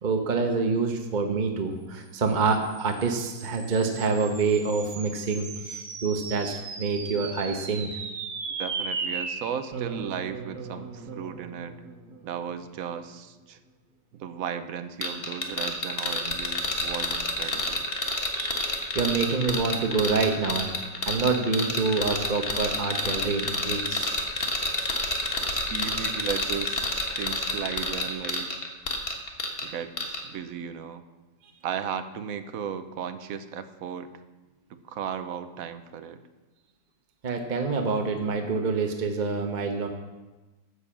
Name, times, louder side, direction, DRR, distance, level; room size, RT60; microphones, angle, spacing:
voice 1, 0.0-8.1 18.3-20.7 21.0-24.2 37.2-39.9, right 4 dB, 35° right, 4 dB, 0.8 m, -27 dB
sound 1, 2.3-12.9, right 4 dB, 85° right, 1.9 m, -37 dB
voice 2, 8.5-11.8 12.2-13.6 14.2-17.9 25.7-26.9 27.2-28.6 29.6-31.0 31.6-34.1 34.7-36.2, right 7 dB, 60° right, 10 dB, 1.1 m, -35 dB
sound 2, 15.0-29.7 30.0-30.2, left 2 dB, 35° left, 1.4 m, -29 dB
11.5 x 6.9 x 7.4 m, 1.2 s
omnidirectional pair, 1.9 m